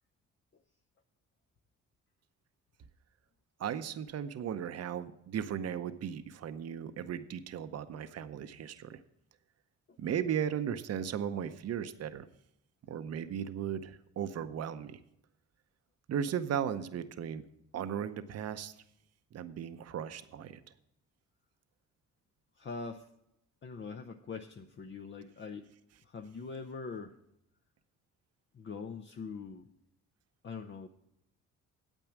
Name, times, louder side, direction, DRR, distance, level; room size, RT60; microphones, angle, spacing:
voice 1, 3.6-9.0 10.0-12.3 12.9-15.0 16.1-17.4 17.7-18.7 19.3-20.6, right 8 dB, 55° right, 12 dB, 0.8 m, -36 dB
voice 2, 22.6-23.1 23.6-25.7 26.0-27.2 28.5-29.7 30.4-30.9, left 4 dB, 40° left, 5 dB, 0.7 m, -43 dB
9.0 x 8.5 x 6.0 m, 0.80 s
cardioid pair, 90°, 30 cm